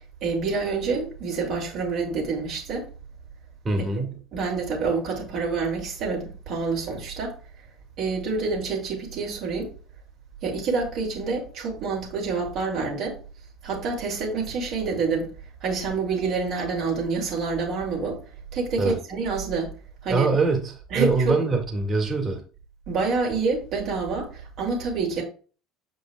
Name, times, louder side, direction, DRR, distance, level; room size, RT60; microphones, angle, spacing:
voice 1, 0.2-2.9 4.3-7.3 8.0-9.7 10.4-13.2 13.6-15.3 15.6-18.2 18.5-19.7 20.0-20.3 20.9-21.4 22.9-25.2, right 4 dB, 55° right, 3.0 m, -27 dB
voice 2, 3.6-4.2 18.8-19.0 20.1-22.4, right 3 dB, 30° right, 2.2 m, -24 dB
8.0 x 5.3 x 2.4 m
figure-of-eight pair, 65°, 0 cm